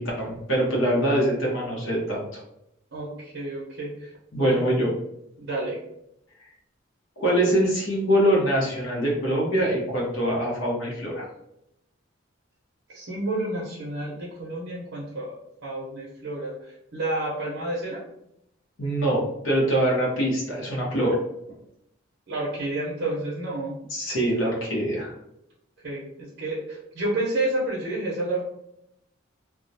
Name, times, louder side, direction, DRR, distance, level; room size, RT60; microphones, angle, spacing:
voice 1, 0.0-2.4 4.3-4.9 7.2-11.3 18.8-21.2 23.9-25.1, right 1 dB, 80° left, -4 dB, 0.8 m, -24 dB
voice 2, 2.9-4.1 4.4-4.6 5.4-5.8 12.9-18.0 22.3-23.8 25.8-28.4, right 2 dB, 65° right, -5 dB, 0.6 m, -30 dB
2.2 x 2.1 x 2.6 m, 0.80 s
head